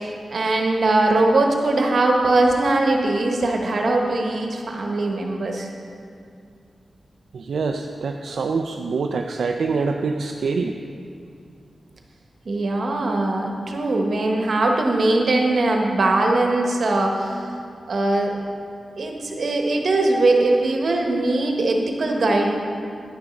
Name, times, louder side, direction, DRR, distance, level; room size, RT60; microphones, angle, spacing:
voice 1, 0.0-5.7 12.5-17.5 17.9-18.3 19.0-22.5, right 2 dB, 50° right, 1 dB, 1.1 m, -21 dB
voice 2, 7.3-10.7, right 4 dB, 70° right, 4 dB, 0.4 m, -25 dB
10.5 x 7.0 x 5.2 m, 2.3 s
wide cardioid pair, 175°, 0 cm